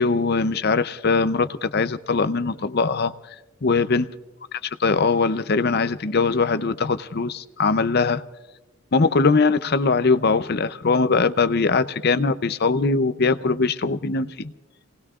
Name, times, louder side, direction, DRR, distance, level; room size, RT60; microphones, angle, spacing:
voice 1, 0.0-3.1 3.6-4.1 4.8-8.2 8.9-14.5, left 4 dB, 50° left, 12 dB, 0.6 m, -21 dB
29.5 x 19.0 x 2.4 m, 1.1 s
head